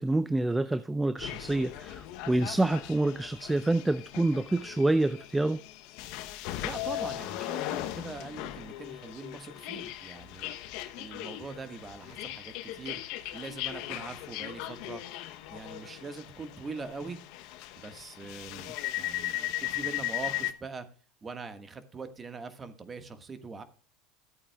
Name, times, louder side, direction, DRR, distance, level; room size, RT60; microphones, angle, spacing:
voice 1, 0.0-5.6, right 2 dB, 10° right, 0.5 m, -27 dB
sound 1, 1.2-20.5, left 14 dB, 65° left, 0.8 m, -38 dB
voice 2, 6.6-10.5 11.0-13.0 13.3-15.0 15.5-17.2 17.8-20.9 21.2-23.6, right 4 dB, 25° right, 1.5 m, -42 dB
14.0 x 8.5 x 2.3 m
supercardioid pair, 100°, 0 cm